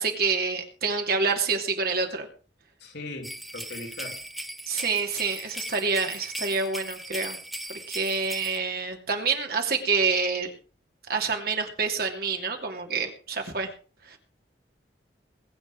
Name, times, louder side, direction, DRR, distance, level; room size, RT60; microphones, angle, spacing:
voice 1, 0.0-2.3 4.7-7.4 7.7-10.5 11.1-13.7 14.1-14.2, right 4 dB, 60° right, 2.8 m, -27 dB
voice 2, 2.8-4.2, left 2 dB, 70° left, 3.0 m, -39 dB
sound 1, 3.2-8.6, right 1 dB, ahead, 0.9 m, -38 dB
21.0 x 8.5 x 4.7 m
head